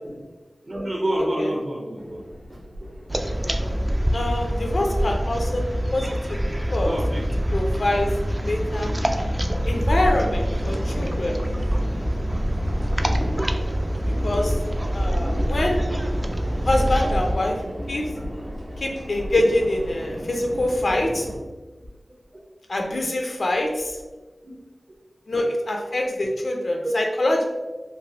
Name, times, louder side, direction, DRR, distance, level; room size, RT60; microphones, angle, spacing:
voice 1, 0.6-2.6 6.8-7.3 11.1-11.5 14.3-14.5 17.0-17.1 24.4-24.5 26.8-26.9, right 1 dB, 50° right, 0 dB, 0.7 m, -29 dB
sound 1, 2.0-21.4, equal, 80° right, 1.2 m, -36 dB
sound 2, 3.1-17.4, equal, 25° right, 0.3 m, -25 dB
voice 2, 4.1-5.6 5.9-6.4 6.7-7.0 7.5-8.9 9.7-11.3 14.2-14.5 14.9-15.8 16.6-17.5 17.9-18.1 18.8-21.3 22.7-24.0 25.3-27.4, left 1 dB, 75° left, 1 dB, 0.5 m, -24 dB
3.3 x 2.2 x 2.8 m, 1.2 s
wide cardioid pair, 45°, 0 cm